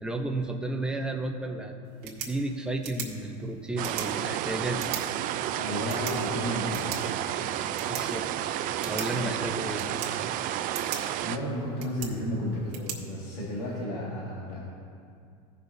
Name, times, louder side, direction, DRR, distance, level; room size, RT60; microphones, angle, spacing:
voice 1, 0.0-1.7 2.0-4.8 5.7-6.0 7.9-8.3 8.8-9.9, right 2 dB, 5° right, 2 dB, 0.7 m, -32 dB
sound 1, 1.8-13.8, right 8 dB, 85° right, 1.7 m, -42 dB
sound 2, 3.8-11.4, right 11 dB, 45° right, 0.4 m, -31 dB
voice 2, 5.6-7.1 8.7-8.8 9.1-9.3 10.7-10.8 11.2-14.6, equal, 90° left, -5 dB, 2.0 m, -33 dB
17.0 x 6.0 x 2.7 m, 2.3 s
supercardioid pair, 125°, 20 cm